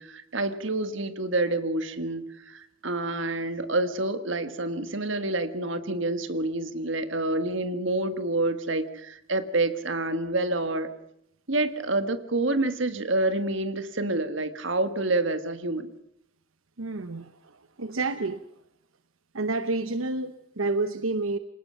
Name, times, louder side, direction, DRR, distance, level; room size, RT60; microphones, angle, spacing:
voice 1, 0.0-10.9 11.5-15.9, right 2 dB, 70° right, 10 dB, 1.6 m, -28 dB
voice 2, 16.8-18.4 19.3-21.4, right 3 dB, 90° right, 11 dB, 1.0 m, -29 dB
28.0 x 19.0 x 5.6 m, 0.77 s
head